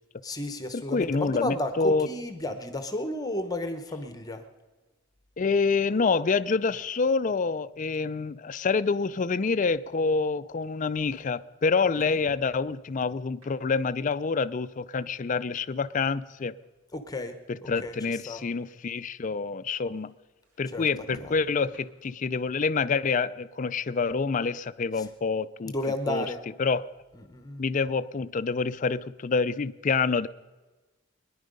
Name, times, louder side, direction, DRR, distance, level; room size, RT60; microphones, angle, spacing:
voice 1, 0.2-4.4 12.1-12.2 16.9-18.4 20.7-20.9 21.2-21.4 24.9-25.1 25.6-26.4 27.1-27.7, left 1 dB, 15° left, 0.8 m, -33 dB
voice 2, 0.7-2.1 5.4-16.5 17.7-20.1 20.6-25.7 26.1-26.3 26.6-26.9 27.6-30.3, left 4 dB, 35° left, 0.4 m, -27 dB
sound 1, 10.0-10.1 11.1-11.2 12.0-12.9 13.4-13.9 14.3-14.5 15.4-15.5 15.7-15.8 16.6-16.7 17.0-17.1 17.4-17.5 17.7-18.1 18.7-18.8 20.9-22.2 22.6-22.8 23.3-23.4, right 1 dB, 70° right, 2.3 m, -50 dB
22.5 x 10.5 x 5.3 m
head